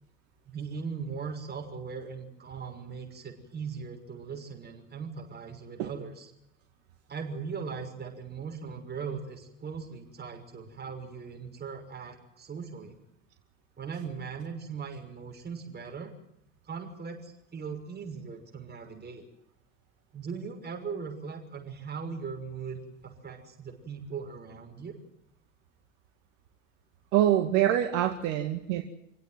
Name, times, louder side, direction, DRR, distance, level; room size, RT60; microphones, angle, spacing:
voice 1, 0.4-6.3 7.1-13.0 13.8-16.1 16.6-19.2 20.1-25.0, right 5 dB, 25° right, 3 dB, 6.3 m, -39 dB
voice 2, 27.1-28.8, right 11 dB, 55° right, 5 dB, 2.1 m, -25 dB
27.0 x 17.0 x 8.0 m, 0.83 s
figure-of-eight pair, 65°, 37 cm